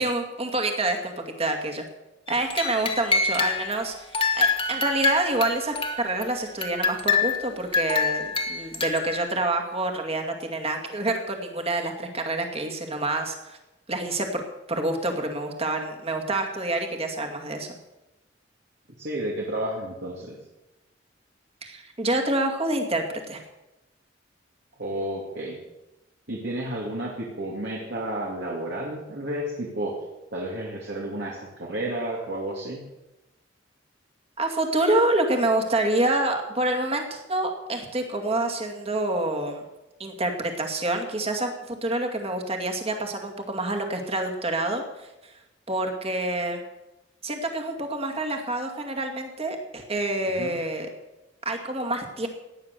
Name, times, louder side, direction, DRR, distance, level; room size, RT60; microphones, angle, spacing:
voice 1, 0.0-1.8 2.3-13.6 13.9-14.4 14.7-17.7 21.6-23.4 34.4-39.6 40.0-45.3 45.7-46.6 47.2-50.9 51.4-52.3, right 2 dB, 30° right, 4 dB, 2.3 m, -27 dB
sound 1, 2.3-3.8 4.1-6.2 6.6-9.3, left 4 dB, 30° left, 1.6 m, -26 dB
voice 2, 19.0-20.4 24.8-25.6 26.3-29.9 30.3-32.8 50.4-50.6, right 1 dB, 60° right, -3 dB, 2.6 m, -31 dB
17.0 x 10.0 x 6.9 m, 1.0 s
head